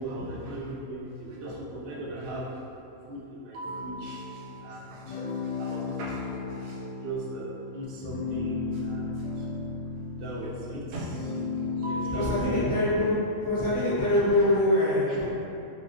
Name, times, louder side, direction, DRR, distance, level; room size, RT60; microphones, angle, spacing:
voice 1, 0.0-2.5 3.1-9.5 10.2-11.4 11.8-12.4, right 1 dB, 55° right, -5 dB, 0.7 m, -38 dB
sound 1, 3.6-12.9, left 4 dB, 80° left, 1.0 m, -35 dB
voice 2, 11.8-13.1 13.4-15.2, left 1 dB, 15° left, -16 dB, 0.7 m, -24 dB
3.0 x 2.9 x 2.6 m, 2.9 s
omnidirectional pair, 1.4 m